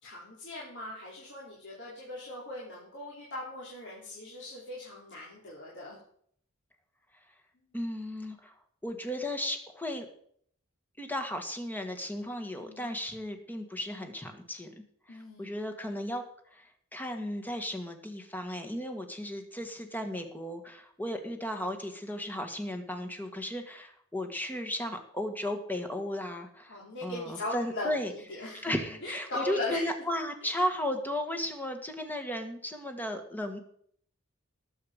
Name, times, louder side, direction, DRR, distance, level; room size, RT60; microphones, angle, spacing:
voice 1, 0.0-6.0 12.6-12.9 15.1-15.5 26.7-28.7 29.0-29.9 30.4-30.5, left 2 dB, 55° left, -6 dB, 3.8 m, -39 dB
voice 2, 7.7-8.5 8.8-10.1 11.0-16.2 16.5-33.6, left 1 dB, 10° left, 5 dB, 1.7 m, -35 dB
19.0 x 7.7 x 5.1 m, 0.64 s
head